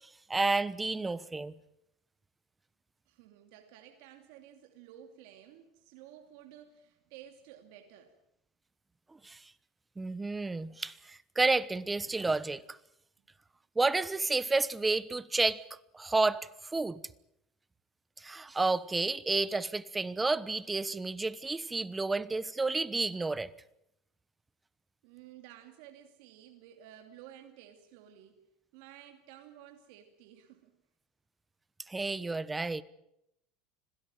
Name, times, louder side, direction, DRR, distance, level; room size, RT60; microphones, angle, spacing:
voice 1, 0.3-1.5 9.2-9.4 10.0-12.8 13.8-15.6 15.9-17.0 18.2-23.5 31.9-32.8, right 3 dB, 15° right, 1.1 m, -30 dB
voice 2, 3.1-8.2 25.0-28.4 28.7-30.8, right 11 dB, 75° right, 2.7 m, -53 dB
26.0 x 17.0 x 9.1 m
supercardioid pair, 115°, 0 cm